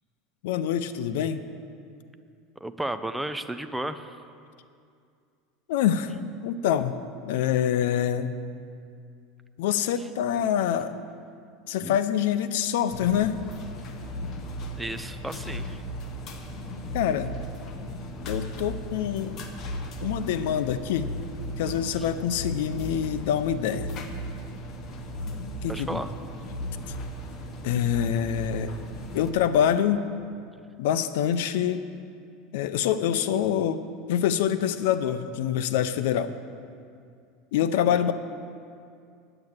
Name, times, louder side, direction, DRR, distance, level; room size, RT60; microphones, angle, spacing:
voice 1, 0.4-1.4 5.7-6.1 6.4-8.3 9.6-10.9 11.7-13.4 16.9-17.3 18.3-19.3 20.0-21.1 21.6-23.9 25.6-26.0 27.6-28.7 29.1-30.1 30.8-31.8 32.5-33.8 34.1-36.3 37.5-38.1, left 9 dB, 75° left, 12 dB, 0.6 m, -25 dB
voice 2, 2.6-4.2 11.8-12.0 14.8-15.8 22.0-22.1 25.7-26.1 37.9-38.0, right 1 dB, 5° right, 9 dB, 0.3 m, -33 dB
sound 1, 12.9-29.3, equal, 35° left, 0.9 m, -36 dB
9.0 x 8.7 x 8.1 m, 2.4 s
supercardioid pair, 170°, 0 cm